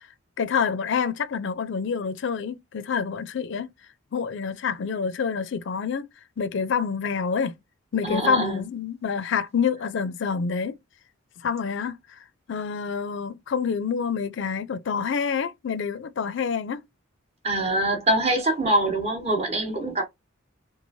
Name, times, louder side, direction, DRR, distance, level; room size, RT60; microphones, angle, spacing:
voice 1, 0.4-3.7 4.1-6.1 6.4-7.5 7.9-10.8 11.4-12.0 12.5-16.8, left 6 dB, 55° left, 0.4 m, -27 dB
voice 2, 8.0-8.6 17.4-20.0, right 1 dB, 30° right, 0.9 m, -24 dB
3.0 x 2.3 x 2.6 m
head